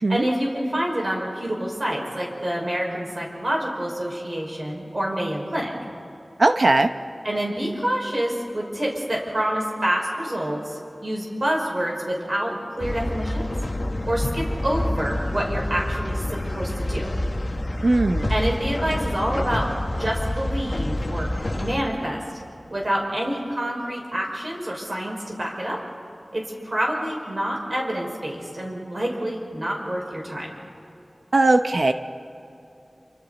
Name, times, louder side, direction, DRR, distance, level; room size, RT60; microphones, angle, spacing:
voice 1, 0.1-5.7 7.2-13.5 14.0-17.1 18.3-19.7 20.0-21.3 21.5-22.2 22.7-25.8 26.3-30.5, right 1 dB, 50° right, -2 dB, 5.6 m, -27 dB
voice 2, 6.4-6.9 17.8-18.3 31.3-31.9, right 2 dB, 70° right, 7 dB, 0.8 m, -18 dB
sound 1, 12.8-21.8, left 1 dB, 45° left, 1.6 m, -27 dB
28.0 x 24.5 x 4.2 m, 2.8 s
wide cardioid pair, 45°, 0 cm